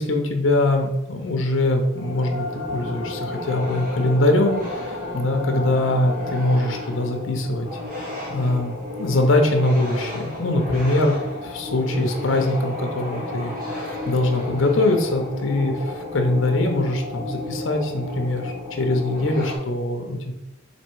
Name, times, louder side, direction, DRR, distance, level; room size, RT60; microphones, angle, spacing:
voice 1, 0.0-7.7 8.0-8.7 9.0-11.1 11.4-20.3, left 2 dB, 70° left, 4 dB, 0.7 m, -22 dB
sound 1, 1.9-19.6, left 2 dB, 45° right, 1.1 m, -32 dB
4.2 x 2.7 x 4.5 m, 0.97 s
head